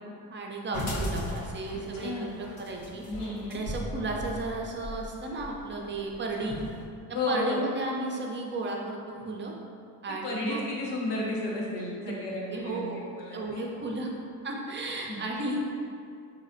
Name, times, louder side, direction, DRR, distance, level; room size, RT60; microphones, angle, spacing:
voice 1, 0.3-3.0 3.5-6.6 7.3-9.5 10.0-10.7 12.5-13.0 13.3-14.1 14.4-15.6, right 2 dB, 25° right, 0 dB, 0.6 m, -34 dB
sound 1, 0.7-6.8, equal, 55° left, 1.1 m, -37 dB
voice 2, 1.7-2.3 3.1-3.6 7.1-7.6 10.2-13.6 15.1-15.2, left 2 dB, 75° left, -4 dB, 1.0 m, -33 dB
3.9 x 2.9 x 2.6 m, 2.4 s
supercardioid pair, 70°, 41 cm